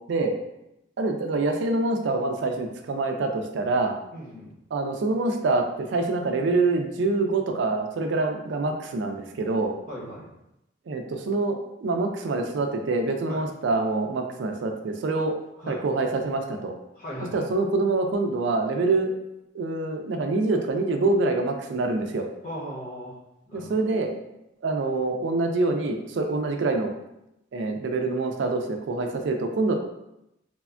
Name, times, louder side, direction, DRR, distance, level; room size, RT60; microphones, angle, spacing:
voice 1, 1.0-4.0 4.7-9.8 10.9-15.3 15.7-16.7 17.3-19.1 19.5-22.3 23.5-24.1 24.6-26.9 27.5-29.8, right 3 dB, 75° right, 4 dB, 0.3 m, -25 dB
voice 2, 4.1-4.6 9.9-10.3 13.3-13.4 15.6-15.8 16.9-17.5 22.4-23.1 23.5-23.8, equal, 45° left, -5 dB, 1.0 m, -38 dB
3.3 x 2.1 x 2.4 m, 0.86 s
head